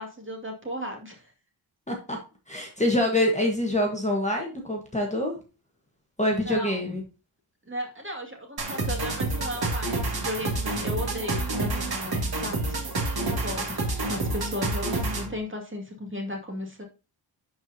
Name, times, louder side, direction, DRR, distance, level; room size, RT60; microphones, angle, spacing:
voice 1, 0.0-1.3 6.5-6.9 7.7-11.4 11.7-12.7 13.1-16.8, left 1 dB, 25° right, 1 dB, 2.3 m, -35 dB
voice 2, 1.9-2.2 2.5-5.4 6.2-7.0, left 1 dB, 15° left, 0 dB, 1.4 m, -25 dB
sound 1, 8.6-15.4, right 2 dB, 45° right, 2.2 m, -28 dB
11.0 x 4.7 x 2.8 m, 0.32 s
wide cardioid pair, 140°, 50 cm